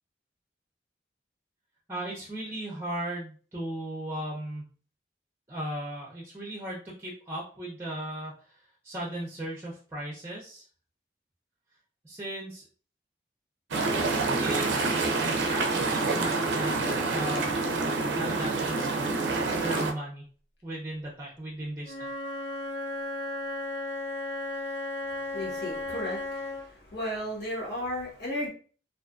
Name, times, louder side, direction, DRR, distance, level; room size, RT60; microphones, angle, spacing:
voice 1, 1.9-4.7 5.5-8.3 8.8-10.6 12.0-12.6 14.4-16.8 17.1-17.6 18.1-19.0 19.5-20.2 20.6-22.1, right 1 dB, 15° right, -4 dB, 0.5 m, -37 dB
sound 1, 13.7-19.9, right 3 dB, 90° right, 0.4 m, -27 dB
Wind instrument woodwind instrument, 21.8-26.6, left 2 dB, 80° left, 0.7 m, -35 dB
voice 2, 25.3-26.2 26.9-28.5, equal, 60° left, -7 dB, 1.2 m, -33 dB
2.5 x 2.3 x 2.4 m, 0.40 s
head